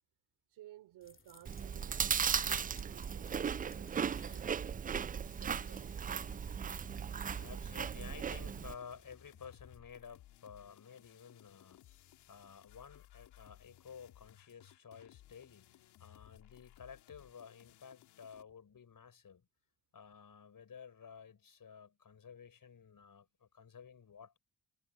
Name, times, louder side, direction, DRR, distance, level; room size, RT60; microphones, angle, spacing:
voice 1, 0.5-4.6 4.9-6.5 7.1-7.2, right 14 dB, 85° right, 3.0 m, -58 dB
sound 1, 1.0-10.0, left 4 dB, 30° left, 2.9 m, -63 dB
Chewing mastication, 1.4-8.7, right 7 dB, 25° right, 0.3 m, -37 dB
sound 2, 5.2-18.4, left 14 dB, 85° left, 2.7 m, -61 dB
voice 2, 7.4-19.5 19.9-24.4, left 7 dB, 55° left, 6.1 m, -53 dB
supercardioid pair, 45°, 39 cm